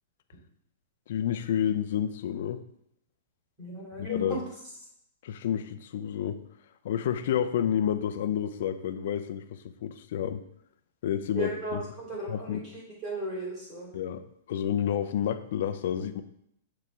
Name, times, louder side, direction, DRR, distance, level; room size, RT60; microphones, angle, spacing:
voice 1, 1.1-2.6 4.0-4.4 5.2-6.4 6.8-10.4 11.0-11.8 12.3-12.6 13.9-14.2 14.5-16.2, left 9 dB, 50° left, 9 dB, 0.4 m, -29 dB
voice 2, 3.6-4.4 11.3-13.9, right 1 dB, 20° right, -6 dB, 2.6 m, -36 dB
6.7 x 4.8 x 3.6 m, 0.75 s
supercardioid pair, 175°, 0 cm